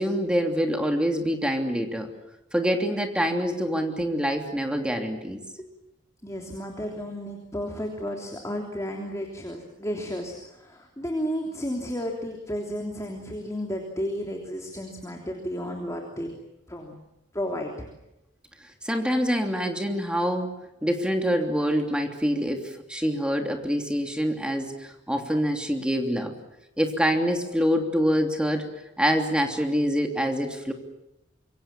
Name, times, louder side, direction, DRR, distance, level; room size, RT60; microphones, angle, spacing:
voice 1, 0.0-2.1 2.5-5.4 18.8-20.5 20.8-26.3 26.8-28.7 29.0-30.7, equal, 5° right, 3 dB, 3.0 m, -25 dB
voice 2, 6.2-16.3 16.7-16.9 17.3-17.9, equal, 15° left, 1 dB, 3.2 m, -32 dB
26.5 x 23.5 x 7.4 m, 0.90 s
head